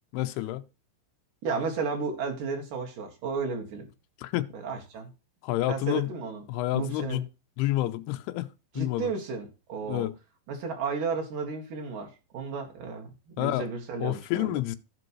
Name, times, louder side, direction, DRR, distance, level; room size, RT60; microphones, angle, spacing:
voice 1, 0.1-0.6 4.2-4.5 5.4-6.1 6.5-7.3 7.6-8.5 8.8-9.1 9.8-10.2 13.4-13.7 14.0-14.8, left 16 dB, 85° left, 2.3 m, -29 dB
voice 2, 1.4-3.9 4.5-5.1 5.7-6.4 6.7-7.2 8.8-10.1 10.5-14.6, right 5 dB, 55° right, 3.0 m, -33 dB
15.0 x 5.2 x 3.1 m
omnidirectional pair, 5.3 m